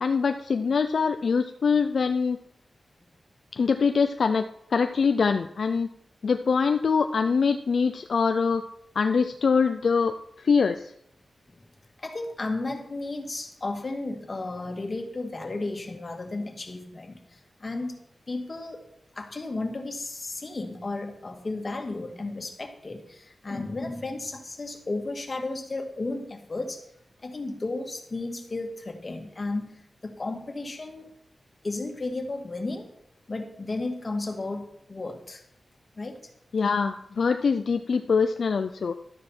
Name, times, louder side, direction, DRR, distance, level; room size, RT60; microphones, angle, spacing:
voice 1, 0.0-2.4 3.5-5.9 6.2-8.6 9.0-10.9 36.5-39.0, left 5 dB, 75° left, 8 dB, 0.5 m, -24 dB
voice 2, 12.0-18.0 18.3-18.8 19.1-26.8 27.2-31.1 31.6-32.9 33.3-35.4 36.0-36.3, left 2 dB, 40° left, 3 dB, 2.0 m, -34 dB
12.5 x 9.7 x 4.5 m, 0.73 s
wide cardioid pair, 80°, 0 cm